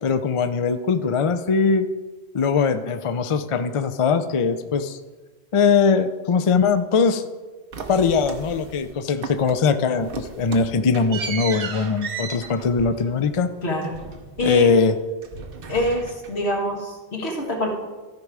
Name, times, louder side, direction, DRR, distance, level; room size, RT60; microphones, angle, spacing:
voice 1, 0.0-1.9 2.3-5.0 5.5-7.2 7.9-13.5 14.4-14.9, left 5 dB, 45° left, 10 dB, 0.4 m, -21 dB
sound 1, 7.7-8.9 9.2-9.7 10.0-14.9 15.2-16.5, right 5 dB, 60° right, 1.0 m, -35 dB
voice 2, 13.6-13.9 14.4-14.7 15.7-17.7, equal, 80° left, 0 dB, 1.9 m, -25 dB
13.5 x 5.3 x 4.8 m, 1.3 s
omnidirectional pair, 1.1 m